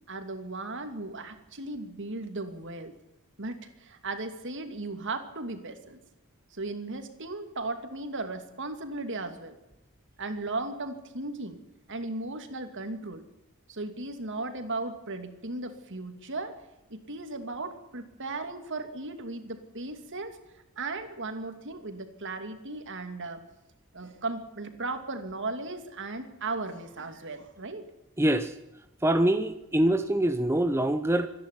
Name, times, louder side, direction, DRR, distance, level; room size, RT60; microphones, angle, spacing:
voice 1, 0.1-2.9 3.4-6.0 6.5-9.6 10.2-11.6 11.9-13.3 13.7-16.6 16.9-20.4 20.8-23.4 23.9-27.9, right 2 dB, 55° right, 7 dB, 2.6 m, -36 dB
voice 2, 28.2-28.5 29.0-31.3, right 1 dB, 10° right, 9 dB, 0.8 m, -24 dB
25.5 x 10.5 x 9.9 m, 0.94 s
head